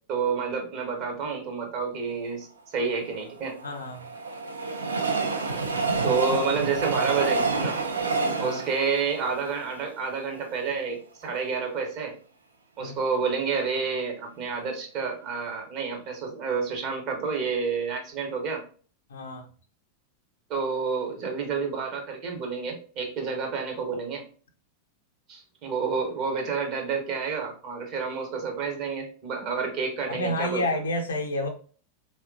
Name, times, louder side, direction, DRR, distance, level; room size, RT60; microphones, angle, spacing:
voice 1, 0.1-3.5 6.0-7.7 8.4-12.1 12.8-18.6 20.5-24.2 25.3-30.6, right 5 dB, 40° right, 0.8 m, -29 dB
Train, 3.1-10.4 10.9-11.0 11.2-11.3, right 4 dB, 75° right, 0.4 m, -28 dB
voice 2, 3.6-4.1 8.4-8.6 12.8-12.9 19.1-19.5 30.1-31.5, left 1 dB, 70° left, 0.5 m, -30 dB
3.0 x 2.2 x 2.4 m
figure-of-eight pair, 90°, 0 cm